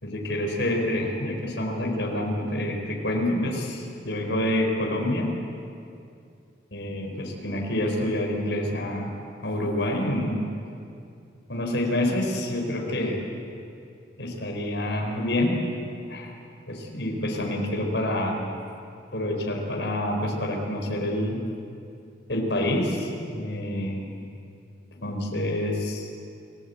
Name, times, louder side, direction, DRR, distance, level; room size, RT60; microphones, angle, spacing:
voice 1, 0.0-5.3 6.7-9.1 9.4-10.4 11.5-13.2 14.2-15.6 16.1-16.3 16.7-18.4 19.1-21.4 22.3-24.0 25.0-26.1, left 1 dB, 70° left, 1 dB, 4.5 m, -27 dB
30.0 x 19.0 x 8.2 m, 2.5 s
head